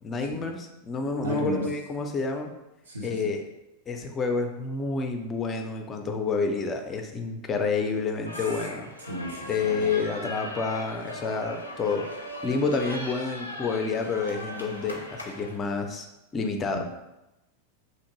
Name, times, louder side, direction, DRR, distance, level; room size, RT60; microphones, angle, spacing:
voice 1, 0.0-2.5 3.0-3.4 3.9-8.9 9.5-12.1 12.4-16.1 16.3-16.8, left 4 dB, 25° left, 4 dB, 0.4 m, -29 dB
voice 2, 1.2-1.6 2.9-3.3 9.0-9.9 16.7-16.8, equal, 75° right, -2 dB, 0.6 m, -34 dB
sound 1, 8.3-15.6, left 1 dB, 85° left, 0.4 m, -39 dB
2.9 x 2.5 x 2.9 m, 0.94 s
figure-of-eight pair, 90°, 0 cm